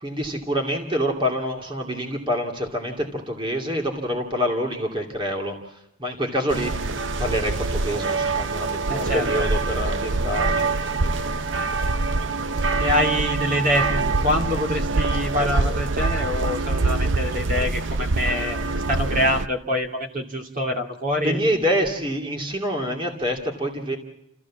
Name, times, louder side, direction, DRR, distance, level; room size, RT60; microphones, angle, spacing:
voice 1, 0.0-5.6 6.0-6.7 7.2-10.7 21.2-24.0, equal, 25° right, 1 dB, 2.5 m, -26 dB
sound 1, 6.5-19.5, right 3 dB, 70° right, 0.8 m, -24 dB
voice 2, 8.9-9.5 12.8-18.6 18.9-21.4, left 1 dB, 45° right, 1 dB, 2.8 m, -25 dB
29.5 x 14.5 x 7.4 m, 0.84 s
head